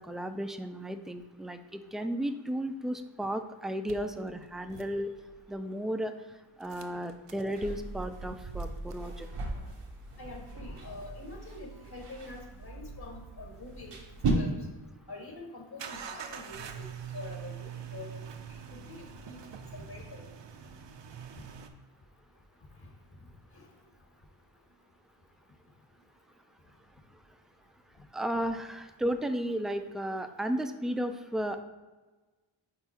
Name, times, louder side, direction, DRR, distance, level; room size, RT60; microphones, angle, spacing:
voice 1, 0.0-5.1 5.5-6.1 6.6-9.3 28.1-31.6, equal, ahead, 8 dB, 0.4 m, -34 dB
sound 1, 3.9-5.5 6.6-14.7 15.8-21.7, right 5 dB, 60° right, 0.7 m, -44 dB
sound 2, 7.5-14.3, right 4 dB, 80° right, 1.1 m, -39 dB
voice 2, 10.2-13.9 14.3-14.5 15.1-16.8 17.1-18.2 18.7-19.4 19.7-20.3, left 3 dB, 50° left, 1 dB, 1.6 m, -45 dB
5.7 x 4.0 x 4.4 m, 1.2 s
cardioid pair, 55°, 50 cm